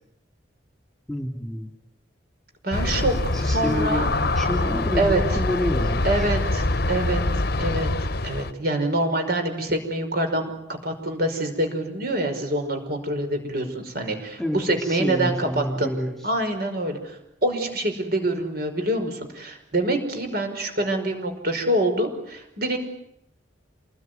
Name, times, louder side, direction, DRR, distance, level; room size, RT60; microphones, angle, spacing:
voice 1, 1.1-1.7 3.3-6.3 14.4-16.1, left 1 dB, ahead, 2 dB, 3.1 m, -28 dB
voice 2, 2.6-3.1 3.4-4.1 5.0-5.2 6.0-7.2 7.6-7.9 8.2-15.9 16.2-22.8, right 1 dB, 50° right, 5 dB, 5.5 m, -25 dB
Aircraft, 2.7-8.5, left 2 dB, 50° left, 1.1 m, -24 dB
28.0 x 20.5 x 9.5 m, 0.81 s
head